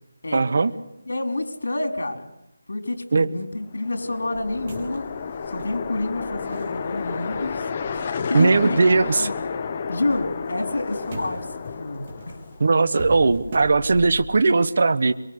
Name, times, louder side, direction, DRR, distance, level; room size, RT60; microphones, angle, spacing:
voice 1, 0.3-0.7 3.1-3.3 8.3-9.3 12.6-15.1, right 3 dB, 45° right, 12 dB, 1.1 m, -18 dB
voice 2, 1.1-2.3 2.7-5.1 5.5-7.7 7.9-8.0 8.3-8.8 9.2-9.3 9.9-12.4, left 2 dB, 85° left, 6 dB, 4.3 m, -28 dB
sound 1, 3.7-12.7, left 5 dB, 25° left, 1.0 m, -31 dB
sound 2, 4.3-9.4 9.8-14.2, right 2 dB, 25° right, 4.0 m, -41 dB
24.0 x 22.5 x 8.4 m, 0.85 s
figure-of-eight pair, 175°, 0 cm